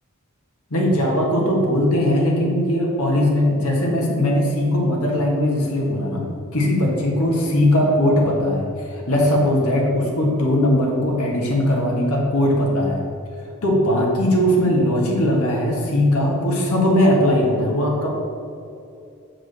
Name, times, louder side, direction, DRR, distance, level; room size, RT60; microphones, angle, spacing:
voice 1, 0.7-6.2 6.5-13.0 13.6-18.1, left 1 dB, 80° left, -2 dB, 1.7 m, -19 dB
6.5 x 4.8 x 6.6 m, 2.6 s
head